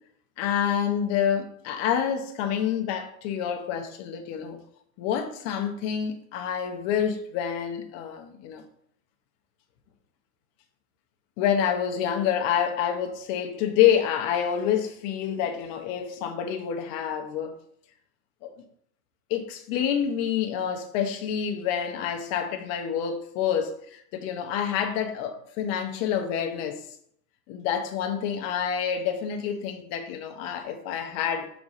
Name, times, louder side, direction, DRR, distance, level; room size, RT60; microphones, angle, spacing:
voice 1, 0.4-4.6 5.0-8.6 11.4-17.5 18.4-18.5 19.3-26.8 27.5-31.5, left 8 dB, 35° left, 0.8 m, -27 dB
4.7 x 3.7 x 5.3 m
supercardioid pair, 140°, 43 cm